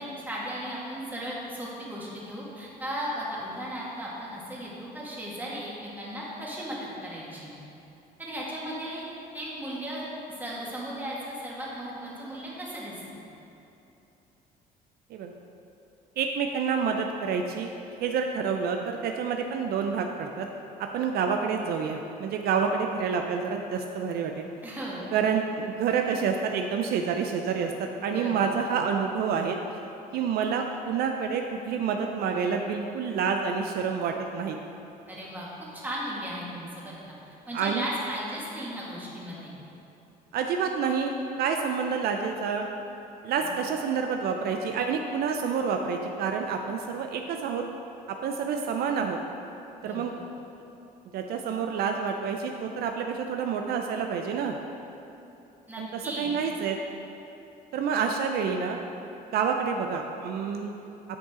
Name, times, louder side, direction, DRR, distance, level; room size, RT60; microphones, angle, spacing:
voice 1, 0.0-7.5 8.2-9.0 9.3-10.0 10.4-13.2 24.6-25.2 28.1-28.5 35.1-35.5 35.7-37.2 37.5-39.5 43.4-43.5 49.8-50.1 55.7-56.3, equal, 10° right, -6 dB, 1.8 m, -36 dB
voice 2, 16.2-17.7 18.0-20.5 20.8-24.5 25.1-29.6 30.1-34.6 37.5-37.9 40.3-41.1 41.4-42.7 43.2-47.6 48.2-49.2 49.8-50.1 51.1-54.6 55.8-56.8 57.7-58.8 59.3-60.7, right 6 dB, 65° right, 4 dB, 0.5 m, -28 dB
9.5 x 5.4 x 3.7 m, 2.9 s
cardioid pair, 110°, 17 cm